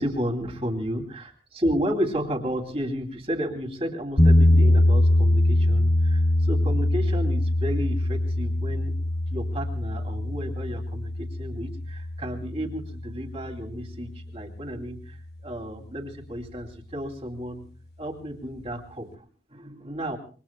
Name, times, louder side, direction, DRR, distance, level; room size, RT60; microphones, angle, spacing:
voice 1, 0.0-8.9 9.3-15.2 15.4-17.6 18.0-19.1 19.5-20.2, equal, 35° right, 3 dB, 2.7 m, -32 dB
sound 1, 4.2-14.2, left 1 dB, 65° left, 2.5 m, -23 dB
26.5 x 23.0 x 2.2 m, 0.40 s
head